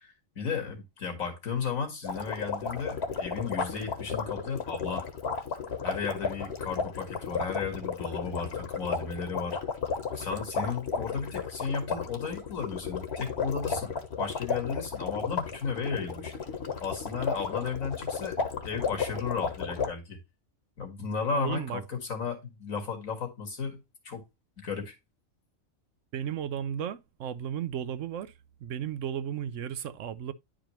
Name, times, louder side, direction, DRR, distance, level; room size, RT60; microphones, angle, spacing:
voice 1, 0.0-5.0 5.8-9.6 10.1-13.9 14.2-16.3 16.8-18.4 18.6-20.2 20.8-24.2 24.6-24.9, left 5 dB, 80° left, 2.3 m, -34 dB
sound 1, 2.0-19.9, left 5 dB, 50° left, 1.4 m, -33 dB
voice 2, 21.3-21.8 26.1-28.3 28.6-30.3, right 9 dB, 70° right, 0.9 m, -34 dB
10.5 x 5.0 x 3.0 m
omnidirectional pair, 1.4 m